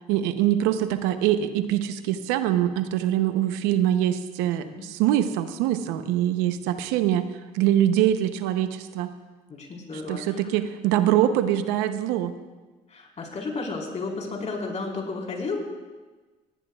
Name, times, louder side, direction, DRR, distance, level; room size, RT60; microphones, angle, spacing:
voice 1, 0.1-7.3 7.5-9.1 10.1-12.3, right 11 dB, 90° right, 10 dB, 0.8 m, -23 dB
voice 2, 9.5-10.4 12.9-15.7, left 3 dB, 45° left, -1 dB, 4.3 m, -32 dB
18.5 x 18.0 x 2.4 m, 1.3 s
supercardioid pair, 75°, 16 cm